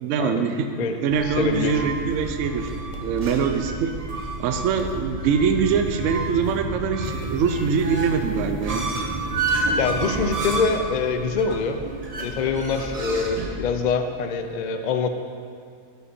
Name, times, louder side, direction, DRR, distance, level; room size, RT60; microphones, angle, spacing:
voice 1, 0.0-2.7 3.0-3.9 4.4-8.9, right 6 dB, 70° right, 6 dB, 0.9 m, -23 dB
sound 1, 1.1-13.5, right 2 dB, 30° right, 0.8 m, -30 dB
voice 2, 1.3-1.9 9.8-11.8 12.2-15.1, left 5 dB, 70° left, 7 dB, 0.4 m, -24 dB
12.0 x 5.3 x 4.3 m, 2.2 s
omnidirectional pair, 1.4 m